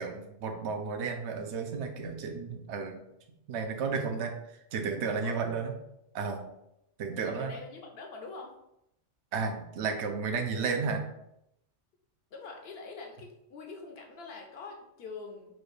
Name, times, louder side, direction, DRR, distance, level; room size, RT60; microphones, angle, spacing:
voice 1, 0.0-3.0 3.5-4.3 4.7-5.7 6.1-6.4 7.0-7.5 9.3-11.0, right 5 dB, 70° right, 5 dB, 0.8 m, -32 dB
voice 2, 7.1-8.5 12.3-15.6, left 3 dB, 60° left, 2 dB, 0.8 m, -44 dB
4.3 x 2.3 x 3.2 m, 0.81 s
omnidirectional pair, 1.2 m